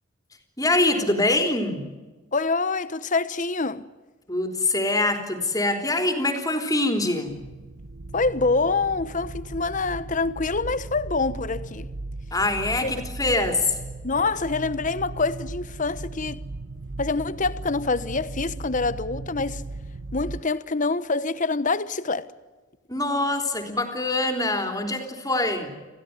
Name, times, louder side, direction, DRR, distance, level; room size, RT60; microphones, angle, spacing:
voice 1, 0.6-1.9 4.3-7.3 12.3-13.8 22.9-25.7, left 2 dB, 20° left, 3.5 m, -24 dB
voice 2, 2.3-3.9 8.1-11.9 12.8-12.9 14.0-16.4 17.0-19.6 20.1-22.3, left 3 dB, 40° left, 1.1 m, -26 dB
sound 1, 7.3-20.4, right 2 dB, 80° right, 1.0 m, -37 dB
28.0 x 16.5 x 9.6 m
head